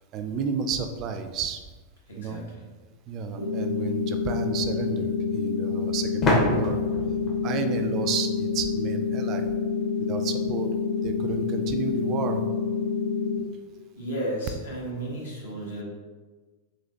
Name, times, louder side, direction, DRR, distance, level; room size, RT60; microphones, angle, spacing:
voice 1, 0.1-1.6 2.1-2.4 3.1-6.8 7.4-9.5 10.1-10.7 11.0-12.4, right 6 dB, 35° right, 7 dB, 0.3 m, -31 dB
voice 2, 2.1-2.4 14.0-15.8, right 1 dB, 70° left, -4 dB, 1.1 m, -33 dB
sound 1, 3.2-3.3 6.2-8.9, left 1 dB, 30° left, 0.7 m, -28 dB
sound 2, 3.4-13.4, left 5 dB, 90° left, 0.5 m, -27 dB
3.9 x 2.8 x 2.8 m, 1.3 s
figure-of-eight pair, 90°, 0 cm